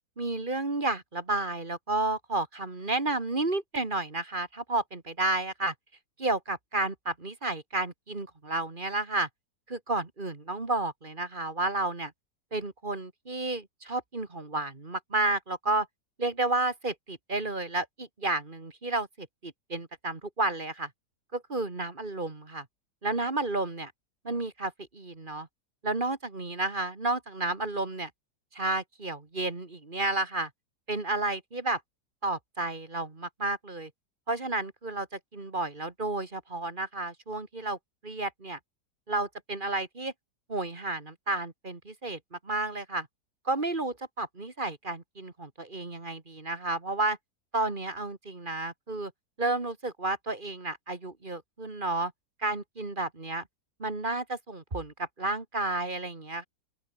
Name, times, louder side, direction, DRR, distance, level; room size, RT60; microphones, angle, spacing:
voice 1, 0.2-5.7 6.2-9.3 9.7-12.1 12.5-15.9 16.2-20.9 21.3-22.7 23.0-23.9 24.2-25.5 25.8-28.1 28.5-30.5 30.9-31.8 32.2-33.9 34.3-37.8 38.0-38.6 39.1-40.1 40.5-43.1 43.5-47.2 47.5-49.1 49.4-52.1 52.4-53.4 53.8-56.5, right 2 dB, 30° right, 2.2 m, -31 dB
open air
omnidirectional pair, 1.9 m